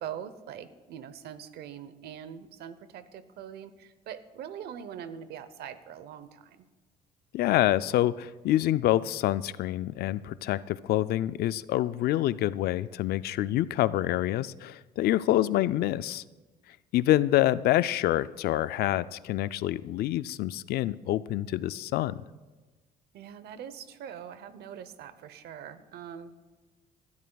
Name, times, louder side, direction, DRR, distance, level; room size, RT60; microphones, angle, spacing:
voice 1, 0.0-6.7 15.3-15.7 23.1-26.3, right 9 dB, 70° right, 13 dB, 0.8 m, -43 dB
voice 2, 7.3-16.2 16.9-22.3, left 14 dB, 70° left, 16 dB, 0.4 m, -26 dB
19.0 x 12.5 x 2.3 m, 1.2 s
cardioid pair, 110°, 17 cm